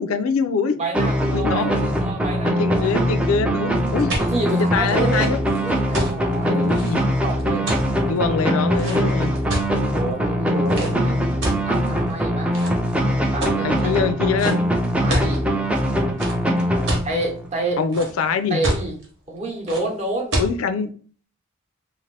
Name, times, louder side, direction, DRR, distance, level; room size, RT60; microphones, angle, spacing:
voice 1, 0.0-0.8 1.3-1.8 2.4-4.2 4.5-5.4 6.3-7.0 8.0-9.3 13.6-14.6 17.8-18.6 20.4-20.9, left 5 dB, 80° left, 0.4 m, -24 dB
voice 2, 0.8-2.9 4.2-7.0 7.2-7.8 9.8-11.2 11.7-12.5 13.3-13.9 15.0-15.4 17.0-17.8 18.5-19.0 19.3-20.4, right 2 dB, 30° right, 0.8 m, -28 dB
sound 1, 0.9-17.5, equal, 5° right, 0.3 m, -22 dB
sound 2, 3.9-10.0 10.7-10.9 11.4-12.1 12.5-13.0 13.4-13.8 14.4-14.6 14.8-15.4 16.2-17.1 17.6-18.3 18.6-19.1 19.7-19.8 20.3-20.5, right 1 dB, 60° right, 1.0 m, -27 dB
2.6 x 2.5 x 3.2 m
head